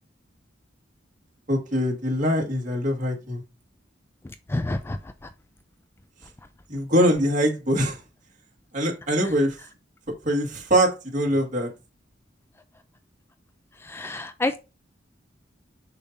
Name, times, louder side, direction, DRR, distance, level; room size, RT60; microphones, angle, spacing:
voice 1, 1.5-3.4 6.7-8.0 8.7-9.6 10.2-11.7, equal, 45° right, 2.0 m, -23 dB
voice 2, 14.0-14.6, left 2 dB, 15° left, 0.3 m, -26 dB
6.8 x 2.8 x 5.3 m
head